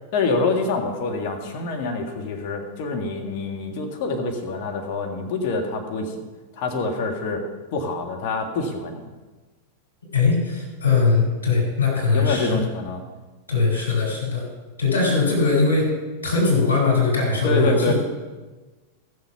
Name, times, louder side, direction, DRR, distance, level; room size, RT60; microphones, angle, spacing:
voice 1, 0.1-6.2 6.5-7.4 7.7-9.0 12.1-13.0 17.4-17.9, left 3 dB, 50° left, 3 dB, 1.9 m, -26 dB
voice 2, 10.1-12.6 13.5-14.4 14.8-15.9 16.2-17.9, left 4 dB, 90° left, -3 dB, 4.9 m, -20 dB
14.5 x 7.5 x 5.7 m, 1.3 s
figure-of-eight pair, 95°, 0 cm